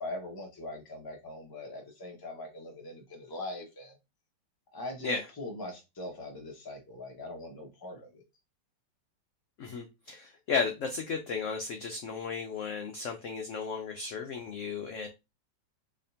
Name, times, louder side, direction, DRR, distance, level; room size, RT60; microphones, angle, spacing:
voice 1, 0.0-4.0 4.7-8.2, left 1 dB, 20° left, 0.6 m, -41 dB
voice 2, 9.6-15.1, left 5 dB, 70° left, 0.7 m, -34 dB
4.2 x 2.9 x 2.7 m
omnidirectional pair, 1.9 m